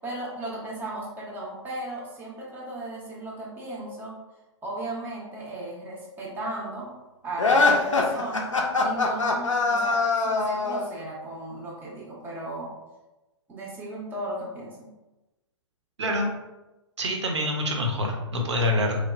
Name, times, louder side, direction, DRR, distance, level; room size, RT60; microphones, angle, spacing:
voice 1, 0.0-4.2 4.6-6.9 7.2-8.5 8.8-12.7 13.5-14.9, right 2 dB, 10° right, -4 dB, 0.5 m, -36 dB
sound 1, 7.4-10.9, left 3 dB, 80° left, 0.4 m, -23 dB
voice 2, 17.0-19.0, left 1 dB, 65° right, 1 dB, 0.6 m, -26 dB
3.0 x 2.0 x 2.3 m, 1.1 s
figure-of-eight pair, 115°, 16 cm